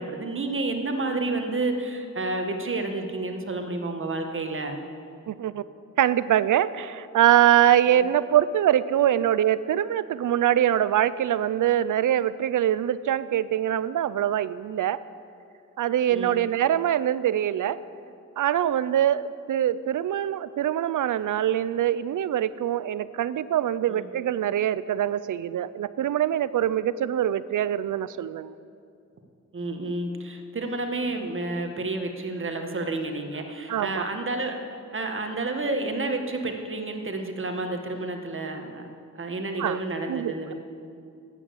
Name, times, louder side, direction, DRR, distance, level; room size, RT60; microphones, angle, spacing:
voice 1, 0.0-4.8 16.1-16.4 23.9-24.0 29.5-34.6 34.9-38.9 39.1-40.5, right 2 dB, 45° right, 5 dB, 1.5 m, -30 dB
voice 2, 5.3-5.6 6.0-15.0 15.8-17.8 18.4-28.5 33.7-34.1 39.6-39.8 40.1-40.5, right 11 dB, 90° right, 16 dB, 0.5 m, -23 dB
13.0 x 9.2 x 8.0 m, 2.5 s
wide cardioid pair, 100°, 30 cm